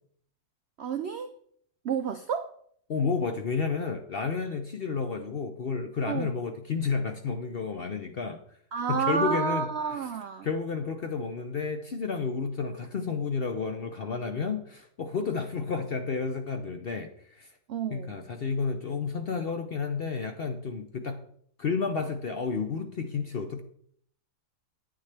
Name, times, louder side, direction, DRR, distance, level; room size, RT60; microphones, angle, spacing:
voice 1, 0.8-1.4 1.8-2.5 6.1-6.3 8.7-10.5 17.7-18.2, right 6 dB, 70° right, 8 dB, 0.6 m, -30 dB
voice 2, 2.9-8.4 8.9-9.7 10.4-17.1 17.4-17.5 17.9-21.2 21.6-23.6, left 5 dB, 55° left, 6 dB, 0.7 m, -31 dB
9.3 x 9.1 x 3.3 m, 0.63 s
omnidirectional pair, 1.7 m